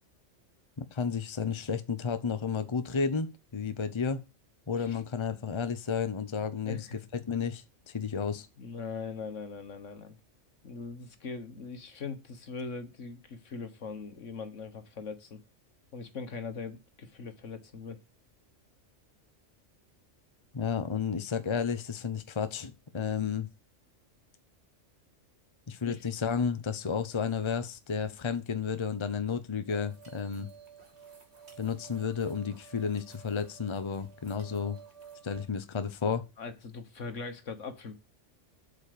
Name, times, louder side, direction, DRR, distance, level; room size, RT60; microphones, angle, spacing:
voice 1, 0.8-4.2 4.7-8.5 20.5-23.5 25.7-30.5 31.6-34.8 35.2-36.3, left 6 dB, 25° left, 0.8 m, -32 dB
voice 2, 6.4-7.0 8.6-10.2 10.6-15.4 15.9-18.0 25.9-26.0 36.4-37.9, left 4 dB, 80° left, 1.8 m, -41 dB
sound 1, 29.7-35.4, right 7 dB, 60° right, 2.6 m, -53 dB
8.3 x 5.2 x 6.7 m
omnidirectional pair, 1.3 m